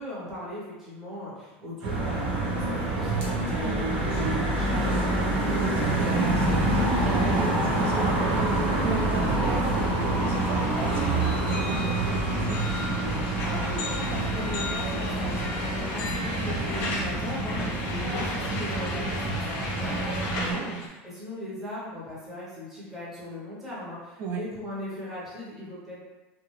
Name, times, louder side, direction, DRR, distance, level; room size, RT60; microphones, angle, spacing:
voice 1, 0.0-5.0 13.4-26.0, left 1 dB, 5° right, -9 dB, 0.8 m, -38 dB
sound 1, 1.8-20.5, right 1 dB, 75° right, 0.8 m, -27 dB
voice 2, 5.4-12.6 20.3-20.8 24.2-24.4, right 5 dB, 40° right, 2 dB, 0.4 m, -35 dB
sound 2, 6.1-20.9, left 2 dB, 45° left, 0.6 m, -36 dB
2.4 x 2.2 x 3.1 m, 1.1 s
supercardioid pair, 165°, 6 cm